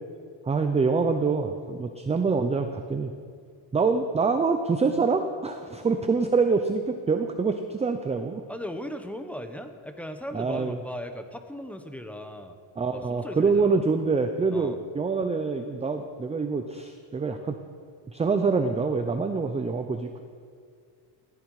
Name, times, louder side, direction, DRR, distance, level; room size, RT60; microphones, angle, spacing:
voice 1, 0.4-3.1 3.7-8.4 10.3-10.8 12.8-17.6 18.1-20.2, right 4 dB, 15° right, 6 dB, 0.6 m, -25 dB
voice 2, 8.5-12.5 12.9-13.8 14.5-14.8, equal, 5° left, 7 dB, 1.0 m, -37 dB
19.5 x 14.5 x 4.8 m, 2.1 s
cardioid pair, 150°, 45 cm